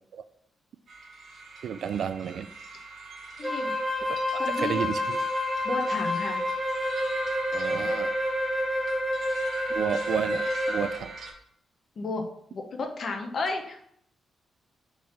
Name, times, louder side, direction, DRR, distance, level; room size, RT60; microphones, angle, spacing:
sound 1, 0.9-11.3, right 3 dB, 55° right, 1.2 m, -42 dB
voice 1, 1.6-2.5 4.3-5.3 7.5-8.2 9.7-11.1, right 8 dB, 70° right, 13 dB, 0.3 m, -32 dB
voice 2, 3.4-3.7 4.4-4.9 5.6-6.4 12.0-13.8, left 3 dB, 50° left, 4 dB, 1.0 m, -32 dB
Wind instrument woodwind instrument, 3.4-11.0, left 1 dB, 5° right, 1.0 m, -29 dB
4.7 x 4.0 x 5.7 m, 0.71 s
wide cardioid pair, 145°, 0 cm